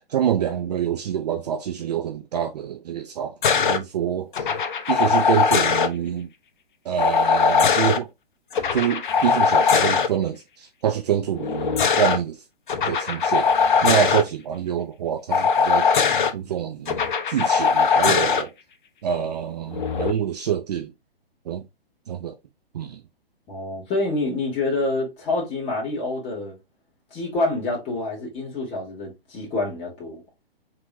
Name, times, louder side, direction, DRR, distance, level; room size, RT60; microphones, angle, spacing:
voice 1, 0.0-4.5 4.9-6.3 6.8-8.1 8.7-12.4 12.9-15.9 16.3-17.0 17.3-18.5 19.0-20.9 21.5-21.6 22.1-22.3 22.7-23.0, right 9 dB, 40° right, 0.6 m, -26 dB
sound 1, 3.4-3.8 4.3-5.9 7.0-8.0 8.5-10.1 11.4-12.2 12.7-14.2 15.3-16.3 16.9-18.4 19.7-20.1, left 6 dB, 50° left, 0.8 m, -20 dB
voice 2, 23.5-26.6 27.1-30.2, left 2 dB, 20° left, 2.2 m, -27 dB
4.7 x 3.6 x 2.6 m
figure-of-eight pair, 125°, 31 cm